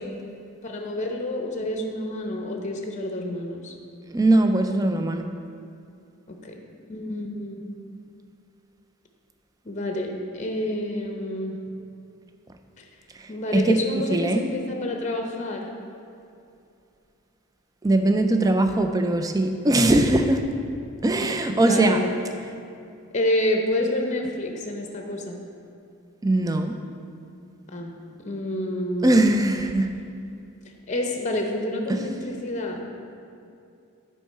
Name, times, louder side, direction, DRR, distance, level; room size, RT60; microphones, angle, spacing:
voice 1, 0.6-3.7 6.3-6.6 6.9-7.7 9.6-11.6 12.8-12.9 13.3-15.7 21.6-22.1 23.1-25.4 27.7-28.0 28.2-29.1 30.9-32.8, left 1 dB, 30° left, 2 dB, 0.7 m, -28 dB
voice 2, 4.1-5.3 13.5-13.7 14.1-14.4 17.8-20.4 21.0-22.0 26.2-26.8 29.0-29.9 31.9-32.0, right 2 dB, 15° right, 6 dB, 0.3 m, -20 dB
7.6 x 4.5 x 5.5 m, 2.5 s
head